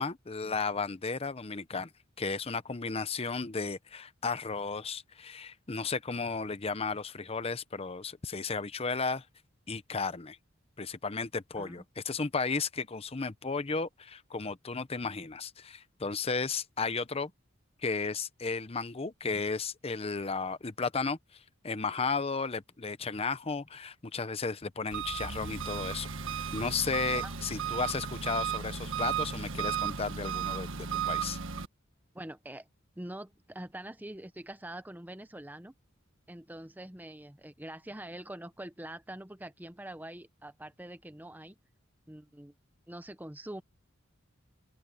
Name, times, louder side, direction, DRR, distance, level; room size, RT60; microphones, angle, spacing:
voice 1, 0.0-1.9 2.2-9.2 9.7-10.4 10.8-17.3 17.8-21.2 21.6-26.1 26.5-31.4, left 4 dB, 30° left, 0.8 m, -34 dB
Engine, 24.9-31.7, right 7 dB, 75° right, 1.6 m, -34 dB
voice 2, 32.1-32.7 33.0-35.7 36.3-41.6 42.1-42.5 42.9-43.6, right 1 dB, 10° right, 0.9 m, -44 dB
open air
head